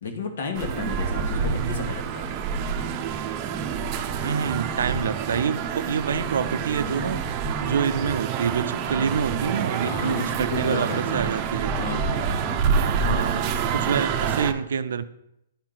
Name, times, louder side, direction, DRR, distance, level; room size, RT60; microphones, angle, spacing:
voice 1, 0.0-2.2 5.9-6.0 9.8-11.3 11.8-13.2, left 4 dB, 70° left, 5 dB, 1.5 m, -33 dB
sound 1, 0.5-14.5, right 6 dB, 35° right, 0.7 m, -27 dB
voice 2, 1.3-1.9 4.2-7.2 7.6-11.7 12.7-13.5 13.7-15.0, right 6 dB, 75° right, 13 dB, 0.5 m, -27 dB
11.0 x 4.5 x 3.9 m, 0.80 s
hypercardioid pair, 140°, 0 cm